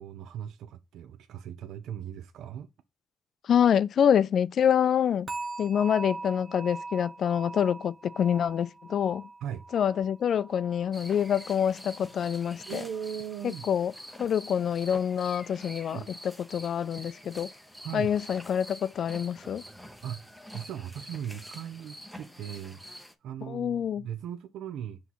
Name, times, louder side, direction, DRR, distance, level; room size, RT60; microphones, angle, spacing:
voice 1, 0.0-2.7 9.4-9.6 12.7-13.7 15.8-16.1 17.8-18.1 20.0-25.0, right 9 dB, 80° right, 0.4 m, -38 dB
voice 2, 3.4-5.3 5.6-9.3 9.7-12.8 13.4-13.9 14.2-16.0 16.5-17.5 17.9-19.6 23.5-24.1, left 8 dB, 60° left, 0.3 m, -26 dB
sound 1, 5.3-12.3 12.6-13.0 13.5-13.6, right 3 dB, 40° right, 0.9 m, -42 dB
sound 2, 10.9-23.1, equal, ahead, 0.8 m, -46 dB
5.8 x 3.1 x 5.5 m
cardioid pair, 90°, 0 cm